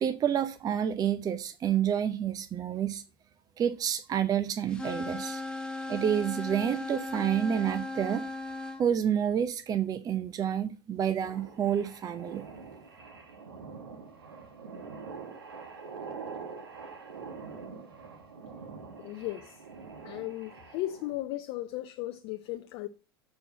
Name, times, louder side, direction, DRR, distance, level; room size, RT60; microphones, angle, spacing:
voice 1, 0.0-3.0 3.6-5.4 5.9-8.2 8.8-12.4, right 9 dB, 30° right, 0.7 m, -29 dB
sound 1, 4.7-8.8, left 2 dB, 5° left, 1.2 m, -37 dB
sound 2, 11.2-21.1, right 5 dB, 80° right, 1.4 m, -45 dB
voice 2, 19.0-19.6 20.0-22.9, left 16 dB, 55° left, 0.6 m, -36 dB
7.6 x 4.6 x 7.1 m
figure-of-eight pair, 75°, 12 cm